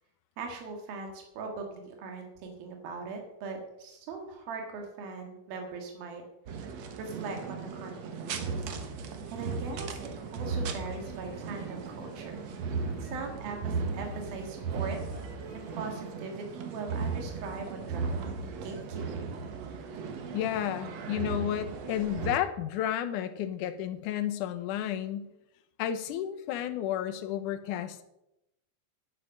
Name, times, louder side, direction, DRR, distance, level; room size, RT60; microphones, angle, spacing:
voice 1, 0.4-6.2 6.5-8.6 8.9-12.5 13.0-15.0 15.5-19.2 19.7-19.9, right 4 dB, 80° right, 3 dB, 3.7 m, -41 dB
sound 1, 6.5-22.4, right 5 dB, 60° right, 1.9 m, -36 dB
sound 2, 9.0-16.0, equal, 5° left, 1.1 m, -53 dB
voice 2, 20.3-25.3 25.8-28.0, left 10 dB, 70° left, 9 dB, 2.2 m, -32 dB
10.5 x 9.7 x 6.5 m, 0.87 s
omnidirectional pair, 4.2 m